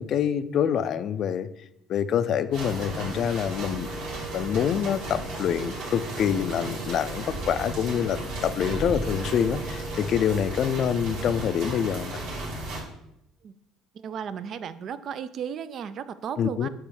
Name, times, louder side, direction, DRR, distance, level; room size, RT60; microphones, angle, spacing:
voice 1, 0.0-1.5 1.9-3.9 4.3-12.2 16.4-16.7, left 8 dB, 50° left, 13 dB, 0.4 m, -26 dB
sound 1, 2.1-11.2, right 3 dB, 25° right, 2.0 m, -43 dB
sound 2, 2.5-12.8, right 1 dB, 80° right, 2.6 m, -34 dB
voice 2, 13.9-16.7, right 8 dB, 45° right, 14 dB, 0.4 m, -35 dB
8.4 x 3.0 x 6.3 m, 0.82 s
cardioid pair, 125°, 0 cm